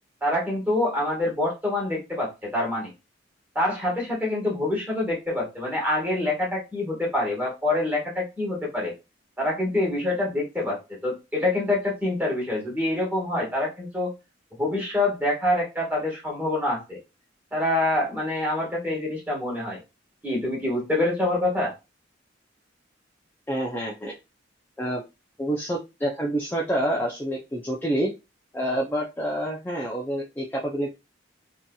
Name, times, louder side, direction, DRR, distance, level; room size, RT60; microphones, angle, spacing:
voice 1, 0.2-2.9 3.5-8.9 9.4-14.1 14.6-17.0 17.5-19.8 20.2-21.7, left 1 dB, 10° right, -4 dB, 1.4 m, -26 dB
voice 2, 23.5-24.2 24.8-25.0 25.4-28.1 28.5-31.0, right 1 dB, 10° left, -3 dB, 0.4 m, -27 dB
2.9 x 2.6 x 2.3 m, 0.26 s
head